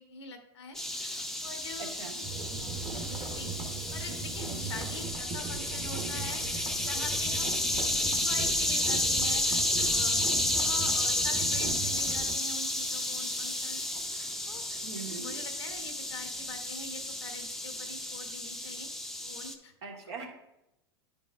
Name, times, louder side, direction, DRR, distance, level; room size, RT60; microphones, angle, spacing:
voice 1, 0.0-1.9 3.3-3.5 3.9-7.5 7.9-10.2 10.5-18.9 19.2-19.7, left 4 dB, 90° left, 6 dB, 0.9 m, -45 dB
sound 1, 0.7-19.5, left 1 dB, 5° left, 0.5 m, -31 dB
voice 2, 1.8-2.3 14.8-15.4 19.8-20.3, right 5 dB, 85° right, 0 dB, 1.3 m, -41 dB
sound 2, 2.2-12.3, right 4 dB, 30° right, 1.0 m, -39 dB
9.6 x 5.2 x 2.4 m, 0.88 s
hypercardioid pair, 100°, 14 cm